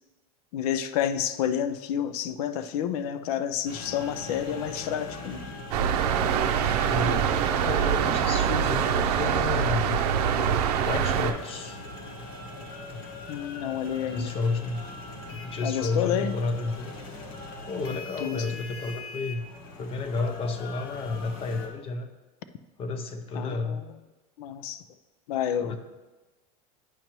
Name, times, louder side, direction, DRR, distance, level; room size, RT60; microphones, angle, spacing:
voice 1, 0.5-5.4 13.3-14.4 15.6-16.4 17.8-18.6 23.3-23.8 24.4-24.8 25.3-25.8, left 9 dB, 75° left, 12 dB, 0.5 m, -30 dB
sound 1, 3.7-21.7, left 2 dB, 50° left, 1.3 m, -41 dB
sound 2, 5.7-11.3, right 8 dB, 85° right, 0.6 m, -24 dB
voice 2, 6.9-10.0 10.8-11.8 12.9-13.0 14.1-14.8 15.3-16.9 17.7-19.5 19.8-22.1 22.8-23.8 25.6-25.8, left 3 dB, 30° left, 8 dB, 0.6 m, -31 dB
9.0 x 5.3 x 3.0 m, 1.2 s
supercardioid pair, 135°, 19 cm